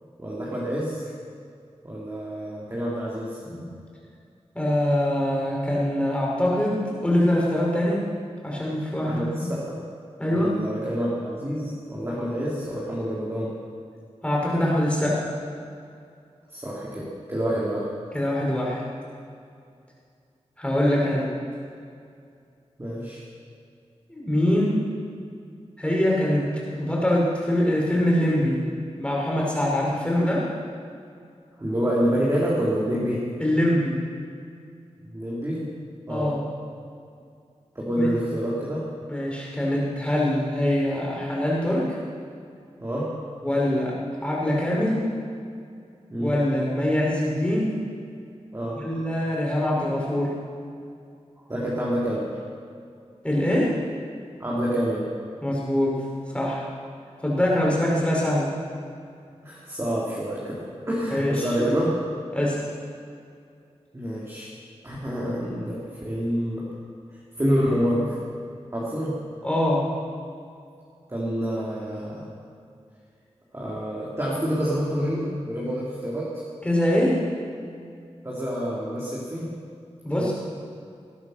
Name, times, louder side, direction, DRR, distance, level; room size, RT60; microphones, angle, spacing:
voice 1, 0.2-1.1 1.8-3.4 9.0-9.8 10.3-13.6 16.5-17.9 22.8-23.2 31.6-33.3 35.1-36.3 37.8-38.9 42.8-43.3 46.1-46.3 48.5-48.9 51.5-52.3 54.4-55.1 59.4-61.9 63.9-64.5 64.8-66.7 67.4-68.2 68.7-69.2 71.1-72.3 73.5-76.4 78.2-79.6 80.2-80.3, equal, 25° right, -6 dB, 3.5 m, -27 dB
voice 2, 4.5-8.0 8.4-9.5 10.2-10.5 14.2-15.2 18.1-18.8 20.6-21.3 24.1-24.8 25.8-28.6 29.0-30.5 33.4-34.0 36.1-36.4 38.0-38.1 39.1-41.9 43.4-43.9 44.2-45.0 46.2-47.8 48.8-50.3 53.2-53.7 55.4-56.0 56.3-56.7 57.2-58.5 61.1-61.7 62.3-62.6 69.4-69.8 76.6-77.2 80.0-80.3, left 1 dB, 10° left, -5 dB, 5.4 m, -23 dB
19.5 x 11.0 x 6.6 m, 2.4 s
wide cardioid pair, 100°, 11 cm